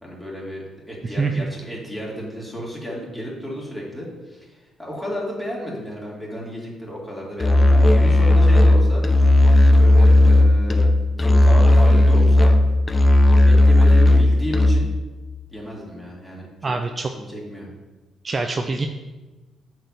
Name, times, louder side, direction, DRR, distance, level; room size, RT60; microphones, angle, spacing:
voice 1, 0.0-9.1 9.8-10.9 11.2-12.6 13.2-14.9 15.5-16.7 17.1-17.7, equal, 5° left, -4 dB, 3.2 m, -32 dB
voice 2, 1.2-1.5 16.6-17.1 18.2-18.9, right 3 dB, 35° right, 5 dB, 0.5 m, -24 dB
Musical instrument, 7.4-15.0, left 1 dB, 25° left, 0.8 m, -14 dB
7.5 x 4.7 x 6.9 m, 1.2 s
cardioid pair, 90°, 0 cm